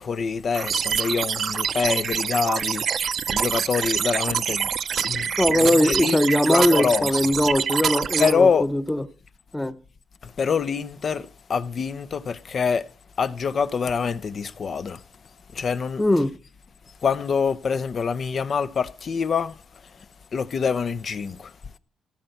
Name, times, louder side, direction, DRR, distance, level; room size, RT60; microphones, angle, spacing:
voice 1, 0.0-2.8 3.3-4.7 5.0-5.3 5.6-6.2 6.5-7.1 8.2-8.7 10.2-12.8 13.2-15.0 15.5-16.0 17.0-19.5 20.3-21.5, left 6 dB, 45° left, 0.8 m, -25 dB
Computer system beeps, 0.5-8.3, right 7 dB, 55° right, 0.6 m, -26 dB
voice 2, 5.4-9.0 9.5-9.7 16.0-16.3, left 1 dB, 10° left, 1.0 m, -21 dB
15.5 x 5.8 x 8.0 m
cardioid pair, 90°, 0 cm